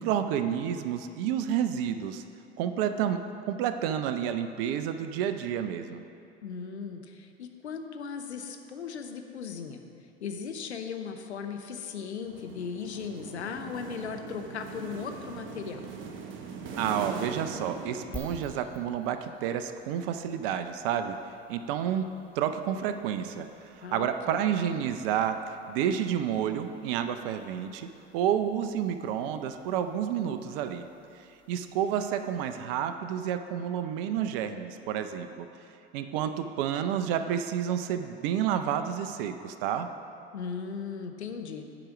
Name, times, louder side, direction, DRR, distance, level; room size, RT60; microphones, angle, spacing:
voice 1, 0.0-2.2 2.6-6.0 16.8-21.2 21.5-22.0 22.4-23.5 23.8-25.4 25.7-30.8 31.5-35.5 35.9-39.9, right 9 dB, 55° right, 9 dB, 0.6 m, -30 dB
voice 2, 6.4-9.8 10.2-15.9 23.8-24.4 40.3-41.7, left 6 dB, 85° left, 5 dB, 0.8 m, -37 dB
sound 1, 12.2-18.8, right 5 dB, 35° right, 1.0 m, -41 dB
sound 2, 18.1-32.9, left 2 dB, 5° left, 1.2 m, -54 dB
8.8 x 5.0 x 6.0 m, 2.6 s
hypercardioid pair, 85°, 33 cm